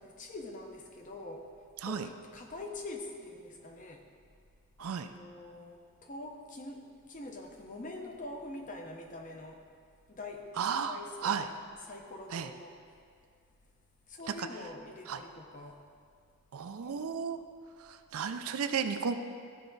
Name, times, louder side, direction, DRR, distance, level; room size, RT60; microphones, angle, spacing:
voice 1, 0.0-1.5 1.8-4.0 4.8-9.6 10.1-10.5 10.9-11.4 11.8-12.7 14.1-15.8 16.9-17.1, left 2 dB, 35° left, 2 dB, 0.7 m, -44 dB
voice 2, 10.6-11.5 12.3-12.5 14.3-14.5 15.1-15.2 16.5-17.4 17.9-19.1, right 6 dB, 75° right, 9 dB, 0.4 m, -33 dB
13.0 x 4.6 x 3.9 m, 2.2 s
head